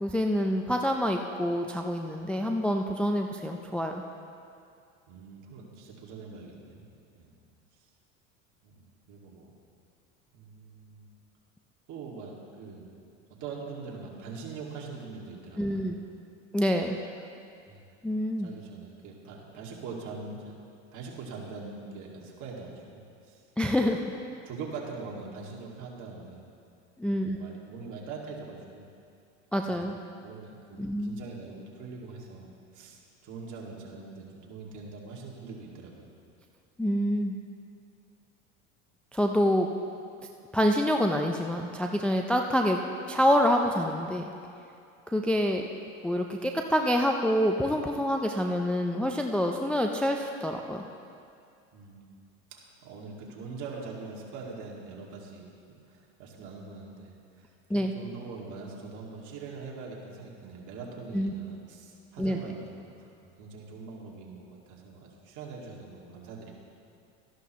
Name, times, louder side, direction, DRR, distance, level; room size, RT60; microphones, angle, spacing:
voice 1, 0.0-4.0 15.6-16.0 16.5-17.0 18.0-18.5 23.6-24.1 27.0-27.4 29.5-30.0 30.8-31.2 36.8-37.4 39.1-39.7 40.5-42.8 43.1-44.2 45.1-45.6 46.0-50.8 57.7-57.9 61.1-61.3 62.2-62.4, equal, 5° left, 3 dB, 0.4 m, -26 dB
voice 2, 5.1-6.9 7.2-7.3 8.6-9.5 10.3-11.1 11.9-13.0 13.4-15.8 17.7-17.9 18.4-20.6 20.9-23.5 24.4-26.5 27.1-28.9 29.6-30.0 30.2-36.1 51.7-52.2 52.5-63.1 63.4-66.5, right 4 dB, 50° right, -3 dB, 2.3 m, -43 dB
13.5 x 11.5 x 3.1 m, 2.5 s
supercardioid pair, 100°, 38 cm